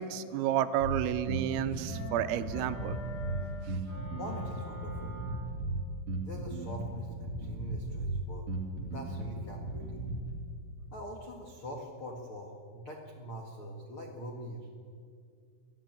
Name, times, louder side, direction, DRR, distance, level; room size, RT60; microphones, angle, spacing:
voice 1, 0.0-3.0, right 11 dB, 90° right, 11 dB, 3.6 m, -31 dB
Bass guitar, 0.8-10.4, right 2 dB, 45° right, 3.6 m, -37 dB
sound 1, 1.9-5.7, equal, 50° left, 8.1 m, -45 dB
voice 2, 4.1-5.2 6.2-8.5 8.8-10.0 10.9-14.7, equal, 75° left, 1 dB, 1.2 m, -43 dB
23.5 x 14.5 x 9.0 m, 2.2 s
omnidirectional pair, 5.9 m